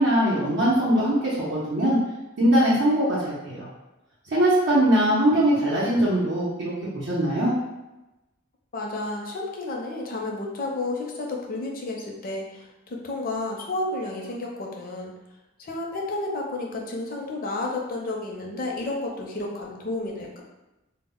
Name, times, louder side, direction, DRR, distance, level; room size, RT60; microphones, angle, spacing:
voice 1, 0.0-2.0 2.4-3.7 4.3-7.5, right 1 dB, 65° right, -9 dB, 0.6 m, -21 dB
voice 2, 8.7-15.1 15.6-20.4, left 2 dB, 45° left, 0 dB, 0.5 m, -31 dB
2.0 x 2.0 x 3.5 m, 1.0 s
head